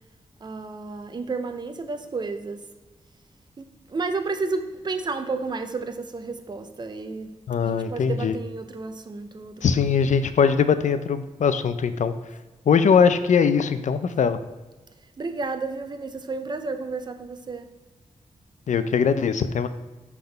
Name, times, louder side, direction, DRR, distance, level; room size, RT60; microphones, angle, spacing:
voice 1, 0.4-2.6 3.6-7.3 7.6-9.8 15.2-17.7, right 3 dB, 35° right, 7 dB, 0.5 m, -32 dB
voice 2, 7.5-8.3 9.6-12.1 12.7-14.4 18.7-19.7, left 6 dB, 70° left, 11 dB, 0.4 m, -21 dB
5.8 x 3.6 x 5.3 m, 1.2 s
wide cardioid pair, 100°, 13 cm